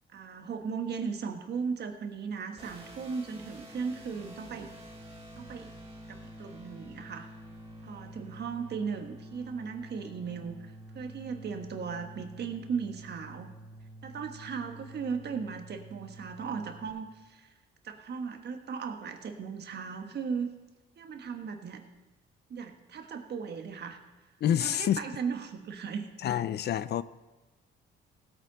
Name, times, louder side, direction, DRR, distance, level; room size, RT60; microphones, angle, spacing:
voice 1, 0.1-4.7 5.4-5.7 6.1-7.3 7.8-13.5 14.0-17.5 17.8-20.5 21.0-21.8 22.5-24.0 24.6-26.1, right 6 dB, 55° right, 5 dB, 1.4 m, -37 dB
sound 1, 2.6-16.9, right 1 dB, 30° right, 2.9 m, -48 dB
voice 2, 24.4-25.0 26.2-27.0, left 10 dB, 55° left, 17 dB, 0.5 m, -27 dB
16.0 x 8.9 x 4.0 m, 1.1 s
cardioid pair, 90°, 20 cm